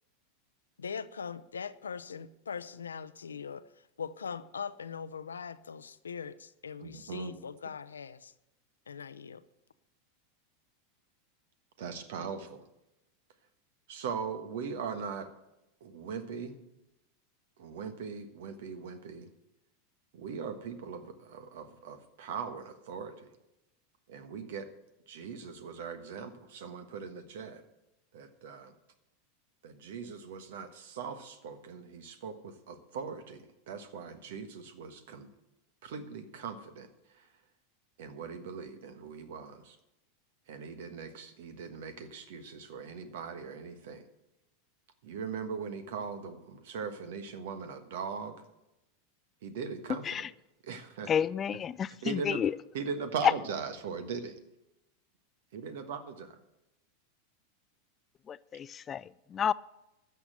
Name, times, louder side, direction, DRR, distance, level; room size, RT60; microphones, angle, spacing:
voice 1, 0.8-3.6 4.0-8.3 8.9-9.4, left 6 dB, 85° left, 14 dB, 0.6 m, -41 dB
voice 2, 6.8-7.4 11.8-12.6 13.9-15.3 15.8-16.6 17.6-19.3 20.1-23.3 24.1-24.7 25.1-27.6 28.1-28.7 29.6-35.3 35.8-36.9 38.0-39.8 40.5-44.0 45.0-48.3 49.4-50.2 50.6-51.1 52.0-52.4 52.7-54.4 55.5-56.4, right 6 dB, 65° right, 9 dB, 1.4 m, -40 dB
voice 3, 49.9-50.3 51.1-52.6 53.2-53.3 58.3-59.5, left 8 dB, 30° left, 19 dB, 0.4 m, -30 dB
13.0 x 7.1 x 7.7 m, 0.92 s
hypercardioid pair, 90°, 0 cm